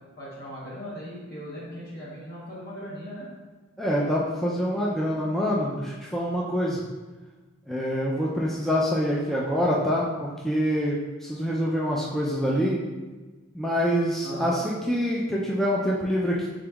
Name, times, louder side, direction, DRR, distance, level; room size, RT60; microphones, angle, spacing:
voice 1, 0.2-3.3 14.2-14.6, equal, 55° left, -8 dB, 1.1 m, -38 dB
voice 2, 3.8-6.8 7.7-12.8 13.5-16.5, equal, ahead, -5 dB, 0.4 m, -26 dB
5.2 x 3.8 x 2.3 m, 1.3 s
head